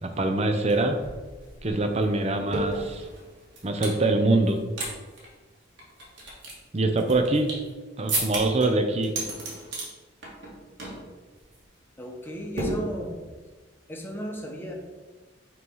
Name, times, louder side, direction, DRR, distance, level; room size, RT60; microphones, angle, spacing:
voice 1, 0.0-1.0 1.6-3.1 3.6-4.6 6.7-7.5 8.0-9.1, right 2 dB, 35° right, 6 dB, 0.6 m, -24 dB
sound 1, 0.7-4.0 4.4-4.9 5.2-5.3 5.8-7.7 8.1-8.7 9.0-9.9 10.2-10.5 10.8-11.1 11.4-11.6 12.6-13.3, right 2 dB, 65° right, 1.7 m, -33 dB
voice 2, 12.0-13.1 13.9-14.7, equal, 10° left, 0 dB, 0.9 m, -34 dB
5.8 x 3.1 x 5.4 m, 1.3 s
head